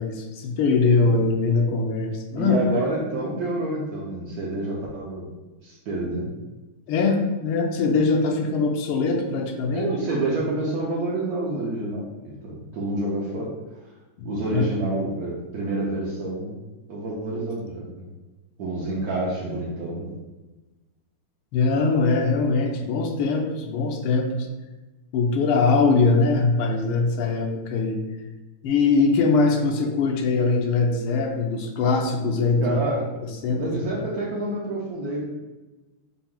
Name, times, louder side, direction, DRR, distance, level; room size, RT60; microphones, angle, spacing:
voice 1, 0.0-2.6 6.9-9.9 14.2-14.3 14.5-14.7 21.5-24.3 25.1-28.0 28.6-32.8 33.4-33.6, left 4 dB, 80° left, 3 dB, 1.5 m, -22 dB
voice 2, 2.4-5.3 5.6-6.3 9.7-13.5 14.2-16.6 16.9-18.0 18.6-20.2 32.6-33.1 33.5-35.2, right 2 dB, 70° right, -6 dB, 0.9 m, -28 dB
5.9 x 2.1 x 3.7 m, 1.1 s
omnidirectional pair, 2.4 m